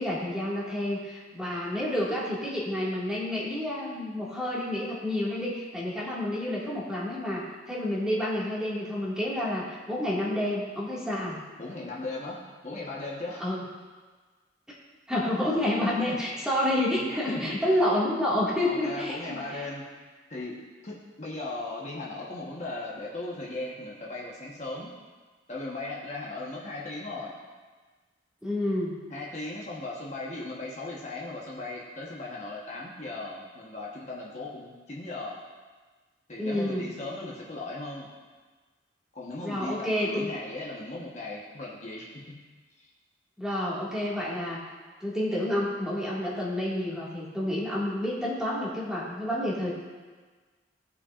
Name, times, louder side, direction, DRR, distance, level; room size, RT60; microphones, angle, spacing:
voice 1, 0.0-11.4 13.4-13.7 15.1-19.4 28.4-28.9 36.4-36.9 39.4-40.3 43.4-44.6 45.0-49.7, left 1 dB, 5° right, -7 dB, 1.8 m, -29 dB
voice 2, 11.6-13.4 16.1-16.2 17.3-17.6 18.6-19.9 20.3-24.9 25.5-27.3 29.1-35.4 36.3-38.1 39.1-42.5 42.8-42.9, left 2 dB, 40° left, -4 dB, 1.1 m, -37 dB
16.5 x 5.7 x 2.4 m, 1.4 s
head